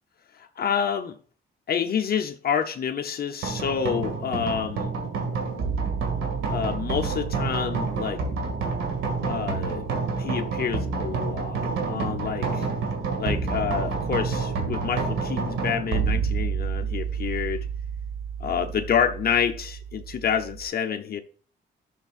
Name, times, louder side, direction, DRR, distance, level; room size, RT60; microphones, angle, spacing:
voice 1, 0.4-1.2 1.7-4.9 6.5-8.2 9.2-9.8 10.2-12.7 13.2-17.7 18.4-21.2, left 7 dB, 50° left, 0.7 m, -28 dB
sound 1, 3.4-20.6, right 5 dB, 80° right, 2.2 m, -29 dB
11.5 x 6.5 x 2.5 m
cardioid pair, 90°, 20 cm